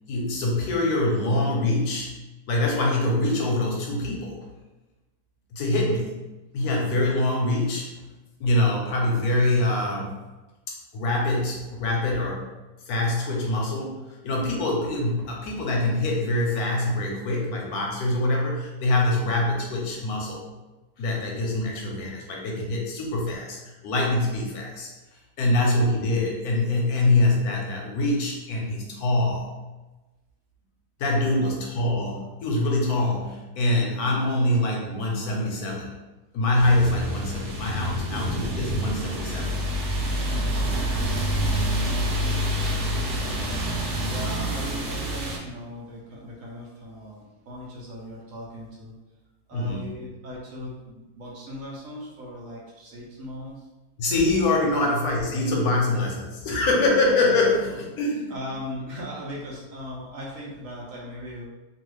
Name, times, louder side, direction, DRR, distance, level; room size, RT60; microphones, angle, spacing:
voice 1, 0.1-2.1 2.5-4.4 5.5-6.1 6.5-7.9 8.4-10.2 10.9-12.5 12.9-14.0 14.2-20.4 21.0-23.6 23.8-24.9 25.4-29.5 31.0-35.9 36.3-39.5 49.5-49.9 54.0-58.3, left 2 dB, 80° left, -1 dB, 1.2 m, -24 dB
voice 2, 31.2-31.5 42.2-43.6 44.0-49.0 49.5-53.7 54.6-54.9 58.3-61.5, left 1 dB, 65° right, -3 dB, 1.1 m, -39 dB
sound 1, 36.6-45.4, equal, 85° right, 1.3 m, -27 dB
3.0 x 2.4 x 3.1 m, 1.1 s
omnidirectional pair, 1.6 m